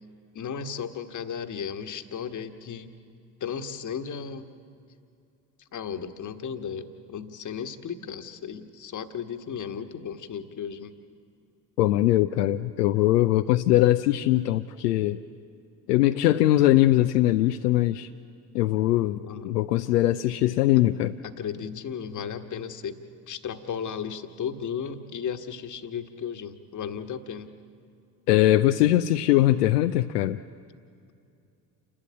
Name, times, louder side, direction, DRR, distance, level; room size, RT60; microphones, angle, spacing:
voice 1, 0.3-3.0 3.4-4.5 5.7-11.0 19.2-19.6 21.2-23.0 23.3-27.5, left 7 dB, 40° left, 8 dB, 1.4 m, -35 dB
voice 2, 11.8-15.2 15.9-18.1 18.5-21.2 28.3-30.4, left 14 dB, 75° left, 9 dB, 0.6 m, -21 dB
28.5 x 12.5 x 8.4 m, 2.5 s
figure-of-eight pair, 55°, 48 cm